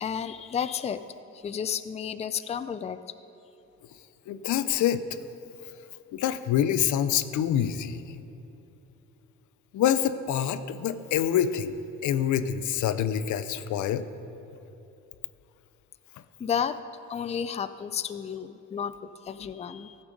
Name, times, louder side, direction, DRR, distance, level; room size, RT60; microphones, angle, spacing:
voice 1, 0.0-1.0 1.4-3.0 16.4-16.8 17.1-18.9 19.3-20.0, left 8 dB, 20° left, 12 dB, 0.4 m, -31 dB
voice 2, 4.3-5.0 6.1-8.0 9.7-11.7 12.0-14.1, left 10 dB, 75° left, 13 dB, 0.6 m, -26 dB
14.0 x 8.0 x 5.2 m, 2.9 s
cardioid pair, 90°, 30 cm